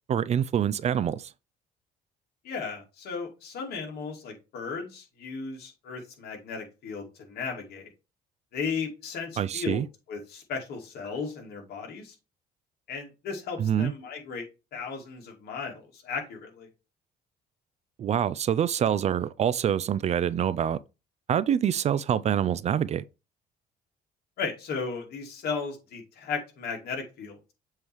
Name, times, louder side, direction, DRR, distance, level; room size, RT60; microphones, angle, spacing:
voice 1, 0.1-1.3 9.4-9.9 13.6-13.9 18.0-20.8 21.3-23.0, right 9 dB, 40° right, 0.4 m, -26 dB
voice 2, 2.4-7.9 8.5-12.1 12.9-14.5 14.7-16.7 24.4-27.5, left 5 dB, 70° left, 2.4 m, -35 dB
7.4 x 3.2 x 4.6 m
cardioid pair, 110°, 17 cm